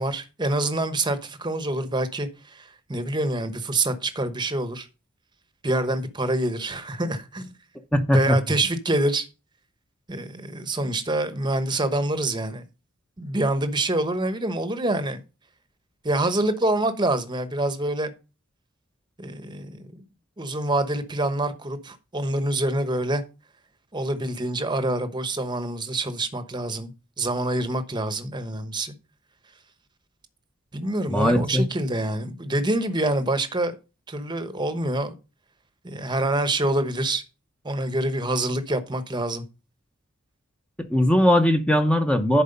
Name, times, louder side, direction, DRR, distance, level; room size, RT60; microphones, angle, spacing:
voice 1, 0.0-4.9 5.6-7.5 8.1-9.3 10.1-12.6 13.2-15.2 16.0-18.1 19.2-20.0 20.4-23.2 23.9-26.9 27.2-28.9 30.7-33.8 34.1-35.1 35.8-37.2 37.6-39.4, right 1 dB, 20° right, 1.0 m, -26 dB
voice 2, 7.9-8.6 31.1-31.7 40.9-42.4, equal, 5° left, 0.8 m, -20 dB
10.5 x 4.7 x 5.3 m
head